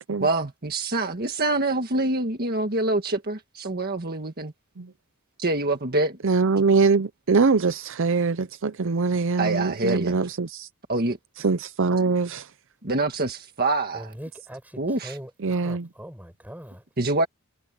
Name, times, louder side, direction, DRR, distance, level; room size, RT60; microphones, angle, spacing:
voice 1, 0.2-4.5 5.4-6.2 9.4-10.2 10.9-11.2 12.8-14.1 14.8-15.2 17.0-17.3, right 2 dB, 45° right, 1.7 m, -25 dB
voice 2, 6.2-10.7 11.4-12.5 15.4-15.9, right 4 dB, 60° right, 0.7 m, -23 dB
voice 3, 13.9-16.8, equal, 10° right, 8.0 m, -41 dB
head